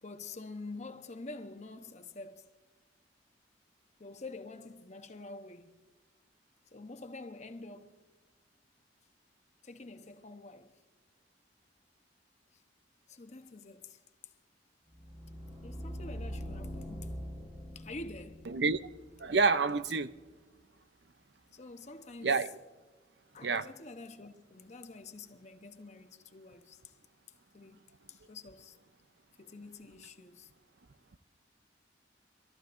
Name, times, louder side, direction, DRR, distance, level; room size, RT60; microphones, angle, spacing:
voice 1, 0.0-2.6 4.0-5.9 6.7-8.0 9.6-10.8 12.5-12.6 13.1-14.0 15.6-17.3 17.7-18.5 21.5-22.5 23.3-26.9 27.5-28.8 29.4-30.5, left 3 dB, 40° left, 0.9 m, -47 dB
sound 1, 14.9-19.9, equal, 30° right, 2.8 m, -43 dB
voice 2, 18.5-18.8 19.2-20.1 22.2-22.5 23.4-23.7, right 4 dB, 65° right, 0.6 m, -28 dB
26.5 x 14.0 x 2.6 m
head